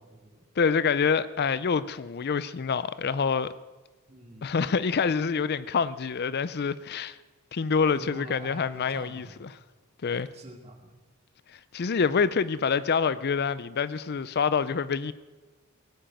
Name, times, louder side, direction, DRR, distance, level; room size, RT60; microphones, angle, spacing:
voice 1, 0.0-0.4 4.1-4.5 7.9-9.5 10.3-10.9, right 1 dB, 30° right, 2.4 m, -46 dB
voice 2, 0.6-3.5 4.4-7.2 7.5-9.5 10.0-10.3 11.5-15.1, left 5 dB, 50° left, 0.5 m, -26 dB
18.0 x 8.9 x 9.1 m
head